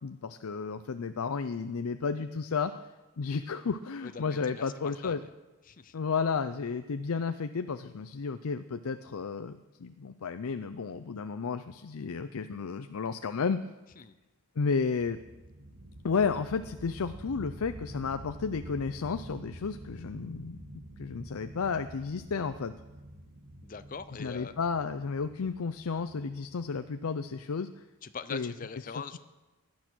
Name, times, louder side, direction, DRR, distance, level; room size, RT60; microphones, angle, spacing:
voice 1, 0.0-2.8 3.2-5.2 5.9-13.6 14.6-15.2 16.0-20.6 21.0-22.7 24.2-27.7 28.3-28.5 28.9-29.0, left 5 dB, 85° left, 10 dB, 0.5 m, -32 dB
voice 2, 4.0-4.7 5.0-5.3 5.7-6.0 14.0-14.2 23.6-24.5 28.0-29.2, left 5 dB, 40° left, 12 dB, 0.5 m, -42 dB
sound 1, 15.0-27.4, right 1 dB, 75° right, 2.0 m, -48 dB
16.5 x 10.5 x 6.2 m, 1.1 s
head